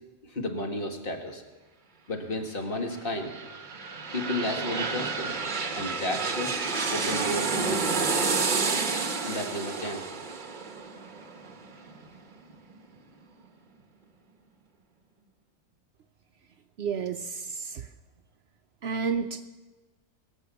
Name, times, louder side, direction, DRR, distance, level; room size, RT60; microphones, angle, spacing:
voice 1, 0.2-1.4 2.1-3.3 4.1-5.3 5.7-6.6 6.9-7.9 9.2-10.0, left 1 dB, 40° left, 3 dB, 1.8 m, -32 dB
sound 1, 2.9-12.5 13.0-13.1, right 4 dB, 40° right, 1.0 m, -30 dB
voice 2, 16.8-17.2 17.6-17.7 18.8-19.5, right 6 dB, 60° right, 8 dB, 0.7 m, -30 dB
22.0 x 7.6 x 6.9 m, 1.2 s
omnidirectional pair, 1.5 m